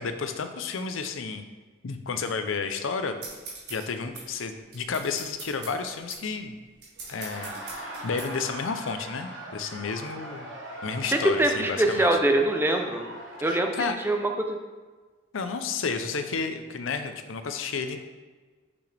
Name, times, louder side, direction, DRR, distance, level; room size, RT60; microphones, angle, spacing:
voice 1, 0.0-1.4 1.8-3.1 3.7-6.6 7.1-10.5 10.8-12.1 13.4-14.0 15.3-18.0, left 5 dB, 85° left, 8 dB, 0.6 m, -31 dB
sound 1, 3.2-8.3, right 4 dB, 55° right, 1.7 m, -43 dB
Laughter, 7.0-13.8, right 1 dB, 70° right, 1.2 m, -41 dB
voice 2, 11.1-13.1 13.4-14.6, right 1 dB, 10° right, 4 dB, 0.5 m, -24 dB
6.2 x 5.8 x 3.3 m, 1.4 s
head